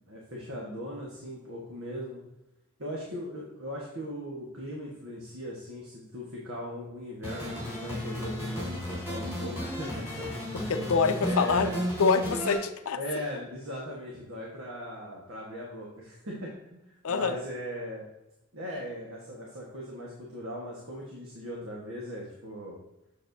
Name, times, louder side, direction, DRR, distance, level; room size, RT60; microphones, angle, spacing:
voice 1, 0.1-2.2 2.8-10.3 10.6-10.9 11.2-11.8 12.9-16.8 17.1-18.0 18.5-22.8, equal, 75° right, -3 dB, 1.4 m, -39 dB
sound 1, 7.2-12.6, equal, 10° right, 2.4 m, -33 dB
voice 2, 10.7-11.7 12.0-13.0 17.0-17.4, left 5 dB, 90° left, 10 dB, 0.5 m, -25 dB
7.1 x 6.9 x 2.7 m, 0.93 s
head